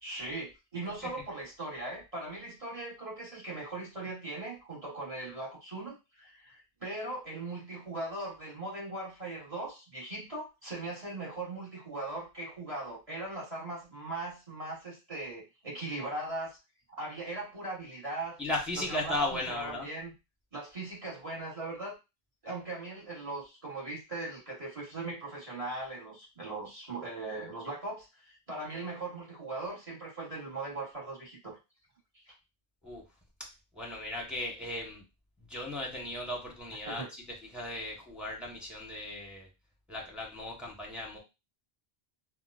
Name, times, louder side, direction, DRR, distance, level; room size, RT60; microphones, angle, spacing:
voice 1, 0.0-16.6 17.0-18.4 18.7-20.1 20.5-22.0 22.4-31.6 32.1-32.2 36.8-37.1, right 2 dB, 35° right, -4 dB, 1.2 m, -39 dB
voice 2, 18.4-19.9 32.8-33.0 33.7-35.0 35.5-37.0 37.5-39.5 39.9-41.2, left 1 dB, ahead, -2 dB, 0.9 m, -36 dB
4.2 x 2.1 x 2.4 m, 0.26 s
omnidirectional pair, 1.1 m